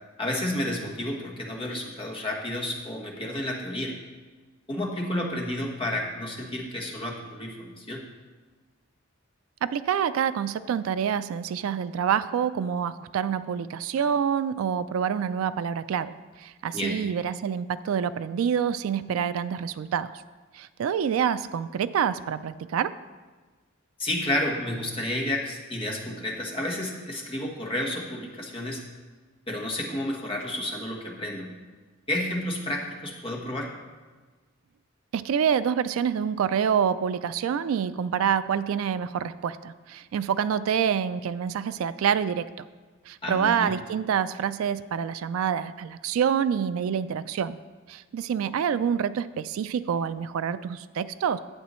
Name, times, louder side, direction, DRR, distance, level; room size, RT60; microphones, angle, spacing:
voice 1, 0.2-3.9 4.7-8.0 16.7-17.0 24.0-28.8 29.5-31.5 32.1-33.7 43.2-43.7, left 1 dB, 25° left, -1 dB, 1.2 m, -31 dB
voice 2, 9.6-20.1 20.5-23.0 35.1-42.7 43.1-47.6 47.9-51.4, right 8 dB, 80° right, 14 dB, 0.3 m, -27 dB
11.5 x 8.2 x 3.1 m, 1.3 s
head